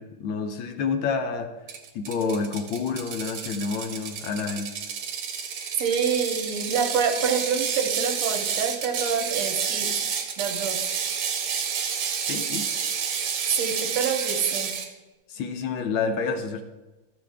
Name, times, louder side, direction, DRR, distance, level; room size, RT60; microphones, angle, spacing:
voice 1, 0.0-1.5 1.9-4.7 12.2-12.7 15.3-16.6, left 5 dB, 70° left, 6 dB, 1.5 m, -28 dB
Ratchet pawl, 1.7-14.9, right 7 dB, 65° right, 1.3 m, -30 dB
voice 2, 5.8-10.1 10.4-10.9 13.5-14.7, right 6 dB, 85° right, 5 dB, 2.0 m, -27 dB
13.5 x 6.3 x 3.5 m, 1.1 s
omnidirectional pair, 2.4 m